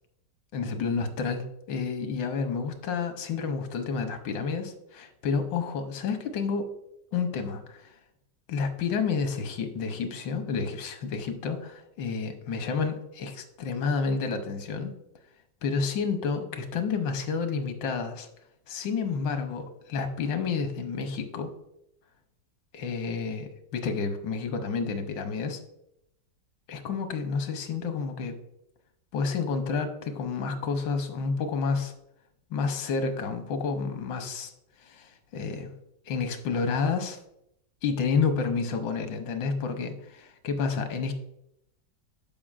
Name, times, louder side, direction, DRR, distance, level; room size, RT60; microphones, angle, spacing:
voice 1, 0.5-6.7 7.1-7.9 8.5-14.9 15.6-18.3 18.7-21.5 22.7-25.6 26.7-28.4 29.1-31.9 32.5-34.5 34.8-35.7 36.1-37.2 37.8-41.1, left 5 dB, 85° left, 7 dB, 1.5 m, -30 dB
12.5 x 5.1 x 2.4 m, 0.80 s
omnidirectional pair, 2.0 m